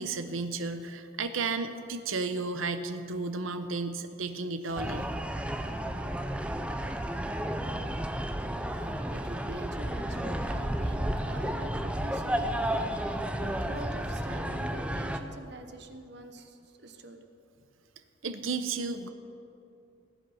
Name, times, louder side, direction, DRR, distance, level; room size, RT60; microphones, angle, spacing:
voice 1, 0.0-5.1 9.0-9.1 18.2-19.1, right 4 dB, 85° right, 9 dB, 0.8 m, -33 dB
sound 1, 4.8-15.2, right 1 dB, 5° right, 0.5 m, -32 dB
voice 2, 8.7-17.2, right 2 dB, 55° right, 7 dB, 1.0 m, -45 dB
19.5 x 8.1 x 5.7 m, 2.6 s
head